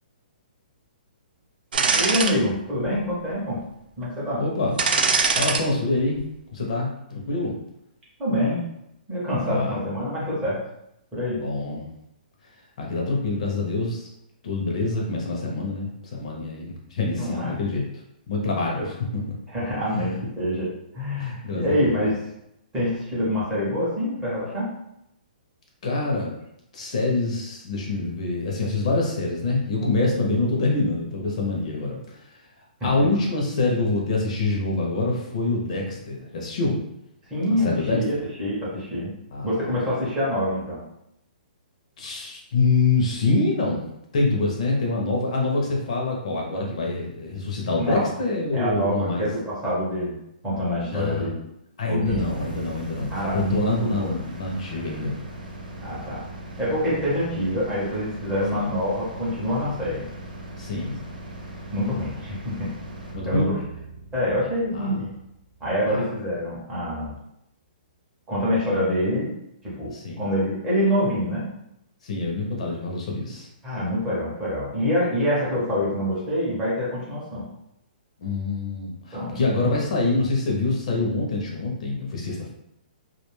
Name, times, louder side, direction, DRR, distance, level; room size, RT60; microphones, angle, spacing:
sound 1, 1.7-2.3 2.8-2.9 4.8-5.6 6.0-6.2, right 4 dB, 80° right, 0.4 m, -21 dB
voice 1, 1.9-3.6 4.0-4.4 8.2-8.6 9.1-10.6 11.1-11.4 17.1-17.6 18.8-18.9 19.5-20.7 20.9-22.1 22.7-24.7 33.0-33.1 37.3-39.1 39.4-40.8 47.8-48.1 48.5-50.2 50.4-51.4 51.8-52.3 53.1-54.1 55.8-56.3 56.6-60.0 61.7-62.7 63.2-63.6 64.1-65.1 65.6-67.1 68.3-69.3 69.6-69.9 70.2-71.5 73.6-77.5 79.1-79.4, equal, 10° right, -8 dB, 0.6 m, -26 dB
voice 2, 4.4-4.7 5.4-6.2 6.5-7.6 9.4-9.9 11.4-11.9 12.8-14.1 14.4-17.8 18.3-18.9 19.3-19.4 19.9-20.2 21.2-22.0 25.8-26.4 26.7-32.2 32.8-36.8 37.6-38.2 39.3-39.5 42.0-43.8 44.1-49.3 50.9-51.4 51.8-55.2 58.5-58.7 60.6-61.0 63.1-63.5 64.7-64.9 65.9-66.0 69.9-70.2 72.0-73.5 78.2-82.5, left 3 dB, 45° left, -1 dB, 0.5 m, -25 dB
sound 2, 52.0-66.0, right 2 dB, 65° right, 0.8 m, -39 dB
2.3 x 2.2 x 3.0 m, 0.81 s
hypercardioid pair, 175°, 5 cm